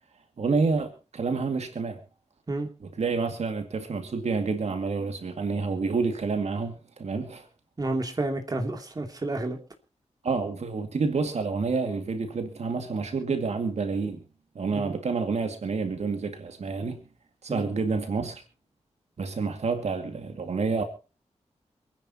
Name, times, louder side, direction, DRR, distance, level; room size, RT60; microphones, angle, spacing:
voice 1, 0.4-2.0 3.0-7.5 10.2-14.2 14.6-17.1 17.4-18.4 19.2-20.8, right 4 dB, 70° right, 2.1 m, -28 dB
voice 2, 7.8-9.6 14.7-15.0 17.5-17.7, right 2 dB, 35° right, 2.8 m, -30 dB
27.5 x 10.5 x 2.9 m
wide cardioid pair, 125°, 12 cm